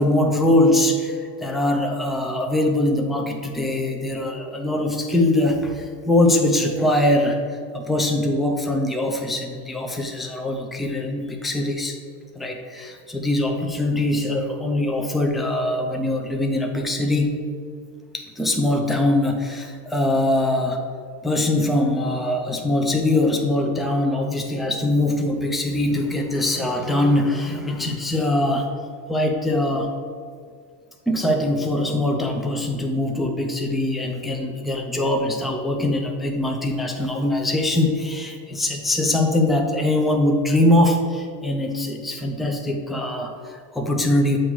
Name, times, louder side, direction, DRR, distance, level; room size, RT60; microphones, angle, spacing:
voice 1, 0.0-7.4 7.7-11.9 12.4-17.4 18.1-20.8 21.2-28.7 29.1-29.9 31.1-44.4, left 1 dB, ahead, 2 dB, 0.5 m, -22 dB
7.8 x 3.0 x 6.1 m, 2.1 s
supercardioid pair, 120°, 46 cm